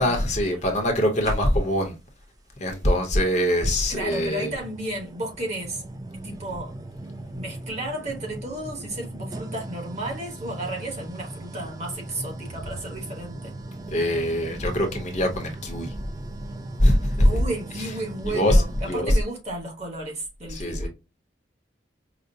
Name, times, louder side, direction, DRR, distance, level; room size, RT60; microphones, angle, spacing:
voice 1, 0.0-2.0 2.6-4.5 13.9-15.9 16.8-17.4 17.8-17.9 18.2-19.2 20.5-20.9, equal, 40° left, 0.8 m, -22 dB
sound 1, 1.2-1.9 3.2-3.3 4.1-19.1, right 2 dB, 20° right, 0.3 m, -39 dB
voice 2, 3.9-5.8 6.2-6.7 7.3-13.5 17.2-20.9, right 1 dB, 35° right, 1.1 m, -33 dB
4.9 x 2.0 x 2.6 m
head